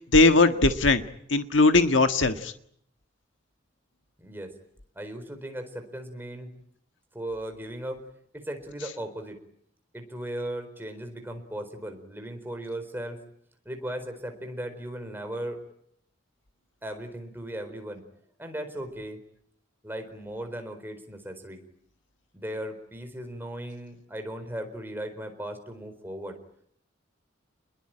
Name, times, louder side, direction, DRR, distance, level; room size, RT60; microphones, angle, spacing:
voice 1, 0.1-1.0 1.3-2.5, left 3 dB, 70° left, 8 dB, 1.6 m, -19 dB
voice 2, 4.2-4.5 4.9-6.5 7.1-8.0 8.3-9.4 9.9-13.2 13.6-15.6 16.8-18.0 18.4-19.2 19.8-21.6 22.3-26.4, right 1 dB, 10° right, 6 dB, 4.4 m, -37 dB
29.0 x 21.5 x 9.0 m, 0.70 s
head